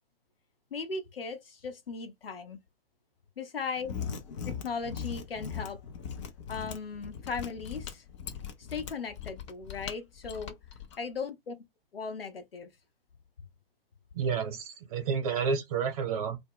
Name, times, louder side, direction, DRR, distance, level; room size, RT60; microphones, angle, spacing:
voice 1, 0.7-2.6 3.4-4.0 4.4-5.8 6.5-8.0 8.6-10.6 11.0-11.5 11.9-12.7, left 5 dB, 75° left, 0.8 m, -37 dB
Mechanisms, 3.8-11.0, left 7 dB, 30° left, 0.4 m, -40 dB
voice 2, 14.1-16.4, right 6 dB, 40° right, 0.9 m, -30 dB
2.2 x 2.1 x 3.5 m
figure-of-eight pair, 115°, 30 cm